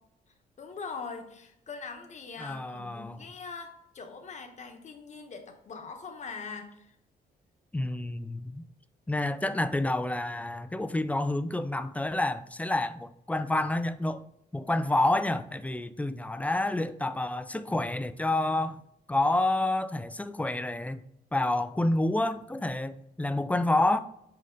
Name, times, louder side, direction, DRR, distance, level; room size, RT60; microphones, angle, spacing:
voice 1, 0.6-6.9, left 5 dB, 45° left, 1.0 m, -42 dB
voice 2, 2.4-3.2 7.7-8.7 9.1-14.2 14.5-18.8 19.1-21.0 21.3-24.0, left 2 dB, 10° left, 0.3 m, -28 dB
5.5 x 4.8 x 3.8 m
cardioid pair, 120°, 17 cm